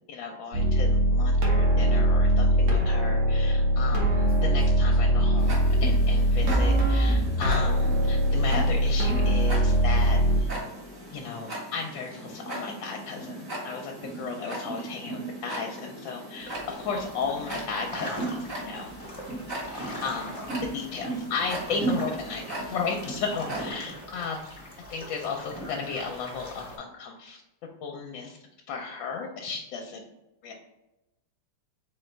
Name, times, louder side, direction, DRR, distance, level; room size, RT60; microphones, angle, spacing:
voice 1, 0.1-10.5 11.1-18.9 20.0-24.4 24.9-27.4 27.8-28.4 28.7-30.0 30.4-30.5, left 5 dB, 75° left, 1 dB, 1.3 m, -34 dB
sound 1, 0.5-10.4, equal, 75° right, 1.7 m, -22 dB
Tick-tock, 5.4-23.7, right 2 dB, 45° right, 1.6 m, -37 dB
sound 2, 16.4-26.8, equal, 20° left, 0.9 m, -41 dB
4.0 x 3.9 x 3.3 m, 0.95 s
omnidirectional pair, 2.1 m